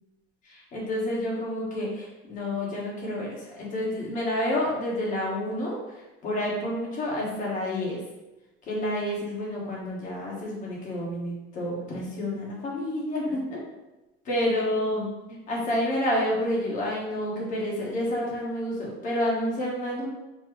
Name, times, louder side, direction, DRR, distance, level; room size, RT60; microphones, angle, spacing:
voice 1, 0.4-8.0 8.7-13.6 14.2-15.1 15.5-20.1, left 1 dB, 40° left, -4 dB, 1.4 m, -29 dB
4.4 x 2.1 x 4.6 m, 1.0 s
cardioid pair, 160°, 21 cm